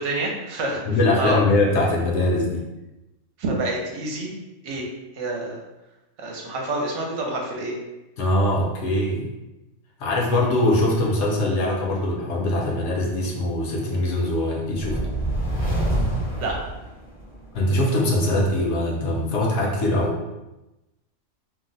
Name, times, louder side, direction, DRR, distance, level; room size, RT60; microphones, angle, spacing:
voice 1, 0.0-0.8 1.2-1.4 3.4-4.3 4.6-4.9 5.1-5.6 6.2-7.8 16.4-16.6, right 2 dB, 70° right, 0 dB, 0.9 m, -27 dB
voice 2, 0.9-2.6 8.2-9.3 10.0-15.0 17.5-20.2, left 1 dB, 65° left, -2 dB, 0.9 m, -22 dB
sound 1, 14.7-17.4, right 1 dB, 10° left, 0.5 m, -26 dB
2.6 x 2.1 x 3.8 m, 1.0 s
omnidirectional pair, 1.3 m